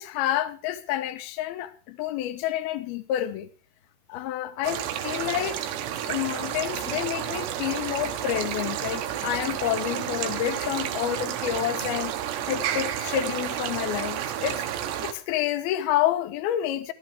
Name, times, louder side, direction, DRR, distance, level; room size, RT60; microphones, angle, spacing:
voice 1, 0.0-3.5 4.1-5.6 6.1-12.1 12.5-14.6 15.0-16.9, left 12 dB, 75° left, 2.7 m, -29 dB
sound 1, 4.6-15.1, right 10 dB, 90° right, 3.3 m, -31 dB
14.5 x 14.0 x 3.5 m
omnidirectional pair, 4.8 m